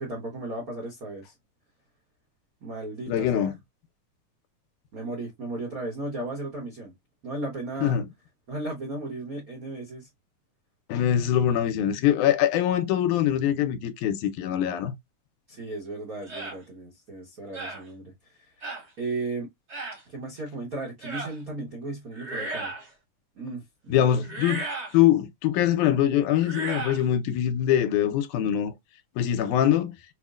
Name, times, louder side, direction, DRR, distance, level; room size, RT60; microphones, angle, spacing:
voice 1, 0.0-1.3 2.6-3.5 4.9-6.9 7.2-8.0 8.5-10.1 15.5-18.1 18.4-18.5 19.0-19.5 20.1-22.7 23.3-24.2, right 2 dB, 70° right, 0.8 m, -35 dB
voice 2, 3.1-3.5 7.8-8.1 10.9-15.0 23.9-24.6 24.9-28.7 29.2-30.0, left 10 dB, 80° left, 2.0 m, -23 dB
sound 1, 16.3-16.6 17.5-17.8 18.6-18.8 19.7-20.0 21.0-21.3 22.1-22.9 24.2-24.9 26.4-27.0, right 3 dB, 40° right, 0.9 m, -34 dB
5.9 x 2.1 x 2.3 m
omnidirectional pair, 3.5 m